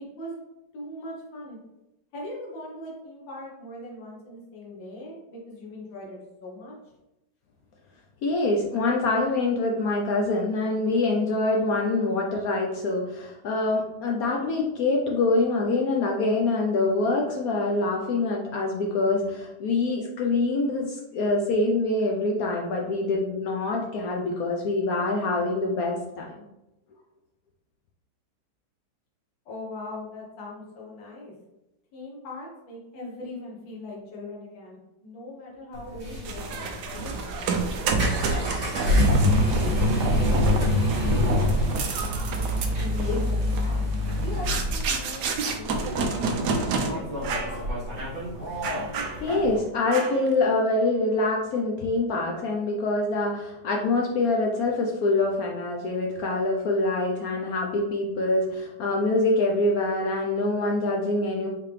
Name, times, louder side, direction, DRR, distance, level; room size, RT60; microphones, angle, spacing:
voice 1, 0.7-1.6 2.1-6.7 29.5-31.3 31.9-39.1 39.4-40.5 41.1-43.9 44.2-45.3 45.6-47.7, left 2 dB, 90° left, -3 dB, 1.9 m, -40 dB
voice 2, 8.2-26.4 49.2-61.5, left 2 dB, 65° left, 0 dB, 0.9 m, -25 dB
sound 1, 35.7-49.6, left 1 dB, 35° right, 1.2 m, -26 dB
sound 2, 36.2-46.9 47.2-47.6 48.0-48.1 48.6-49.5 49.9-50.3, right 4 dB, 70° right, 1.1 m, -30 dB
4.6 x 3.4 x 3.3 m, 0.92 s
omnidirectional pair, 2.0 m